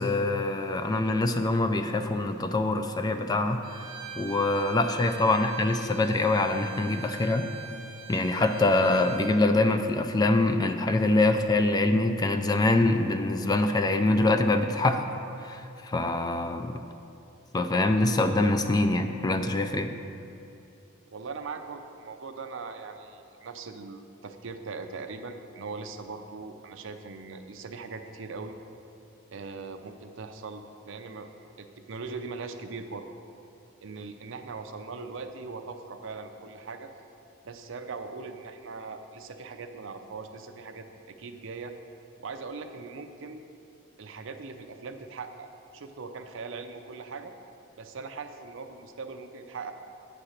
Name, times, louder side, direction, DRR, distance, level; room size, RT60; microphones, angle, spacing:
voice 1, 0.0-3.6 4.2-7.5 8.1-15.0 15.4-16.8 17.5-19.9, left 2 dB, 20° left, 7 dB, 0.3 m, -24 dB
Bowed string instrument, 3.6-9.4, right 6 dB, 45° right, 1.1 m, -43 dB
voice 2, 21.1-28.5 29.3-31.3 31.6-33.1 33.8-36.9 37.4-41.7 42.2-43.4 44.0-47.3 47.8-49.7, right 4 dB, 65° right, 7 dB, 0.5 m, -40 dB
8.7 x 4.3 x 6.5 m, 2.7 s
head